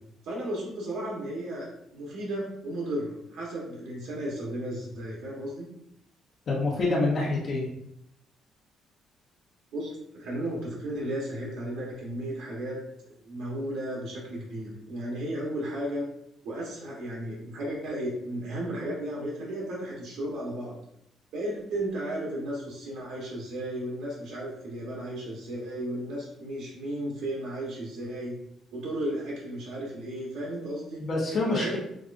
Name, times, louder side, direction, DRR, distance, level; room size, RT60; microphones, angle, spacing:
voice 1, 0.2-1.7 1.9-5.7 9.7-12.8 13.1-16.0 16.4-20.8 21.3-28.3 28.7-31.0 31.3-31.8, right 1 dB, 85° right, -4 dB, 1.2 m, -34 dB
voice 2, 6.5-7.6 31.0-31.8, left 2 dB, 40° left, -3 dB, 0.9 m, -26 dB
5.9 x 2.4 x 2.5 m, 0.78 s
cardioid pair, 170°, 0 cm